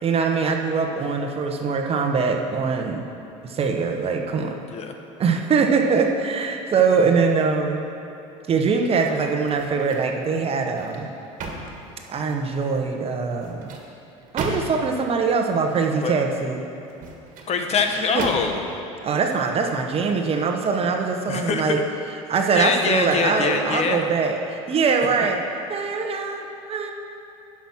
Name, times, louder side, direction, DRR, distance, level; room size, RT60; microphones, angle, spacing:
voice 1, 0.0-3.1 3.4-4.6 5.2-7.8 8.5-11.1 12.1-13.8 14.3-16.6 18.1-18.2 19.0-21.8 22.3-25.4 25.7-26.9, right 5 dB, 35° right, 3 dB, 1.1 m, -22 dB
voice 2, 4.6-5.0 16.0-16.2 17.5-18.8 21.3-21.7 22.5-24.0, left 5 dB, 40° left, 5 dB, 1.0 m, -24 dB
sound 1, 9.4-10.2 10.6-12.5 13.3-15.0 16.8-17.5 18.2-18.8 19.3-19.5, right 3 dB, 55° right, 1.7 m, -35 dB
10.5 x 6.0 x 6.1 m, 2.8 s
supercardioid pair, 95°, 16 cm